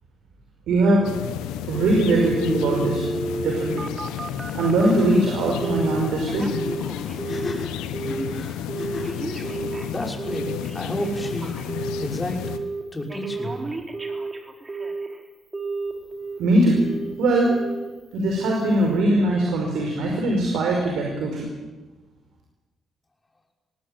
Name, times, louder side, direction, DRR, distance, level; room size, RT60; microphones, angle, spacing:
voice 1, 0.7-1.1 1.7-3.0 3.4-3.9 4.5-6.5 16.4-16.8 17.2-17.6 18.1-21.5, right 1 dB, 80° right, 0 dB, 5.2 m, -21 dB
sound 1, 1.0-12.6, left 10 dB, 90° left, 1.3 m, -32 dB
Telephone, 1.7-5.0 5.6-6.0 6.3-7.6 7.9-8.3 8.7-12.1 12.4-12.8 13.1-15.2 15.5-16.4 16.8-17.1 17.5-17.9 18.3-18.6 19.0-19.1, right 3 dB, 30° right, 4.0 m, -31 dB
sound 2, 4.4-4.5 4.8-5.0 7.1-9.3, left 2 dB, 40° left, 7.3 m, -34 dB
voice 2, 9.9-11.6 12.0-12.4 12.9-13.6, left 1 dB, 20° left, 1 dB, 6.1 m, -31 dB
21.5 x 18.0 x 9.1 m, 1.2 s
supercardioid pair, 60°, 0 cm